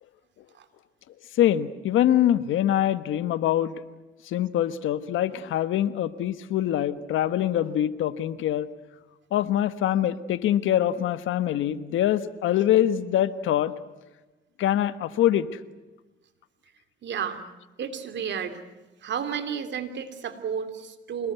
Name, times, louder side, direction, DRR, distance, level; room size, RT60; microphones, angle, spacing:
voice 1, 1.4-3.7 4.3-8.7 9.3-13.7 14.6-15.5, left 11 dB, 80° left, 13 dB, 1.3 m, -24 dB
voice 2, 17.0-17.4 17.8-18.6 19.0-21.3, right 7 dB, 65° right, 9 dB, 3.1 m, -32 dB
26.5 x 20.0 x 9.3 m, 1.1 s
cardioid pair, 90°, 20 cm